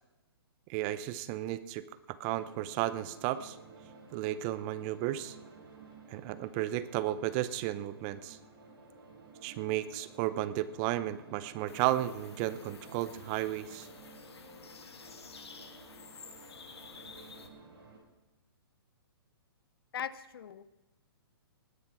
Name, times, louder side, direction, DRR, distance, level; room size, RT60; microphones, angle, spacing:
voice 1, 0.7-3.6 4.1-5.4 6.1-8.4 9.4-13.9, right 14 dB, 30° right, 16 dB, 0.6 m, -33 dB
sound 1, 2.2-18.0, right 3 dB, 60° right, 4.4 m, -53 dB
sound 2, 11.7-17.5, left 5 dB, 85° left, 1.6 m, -52 dB
voice 2, 19.9-20.6, left 9 dB, 65° left, 17 dB, 0.8 m, -39 dB
19.0 x 7.8 x 5.9 m, 1.0 s
hypercardioid pair, 140°, 13 cm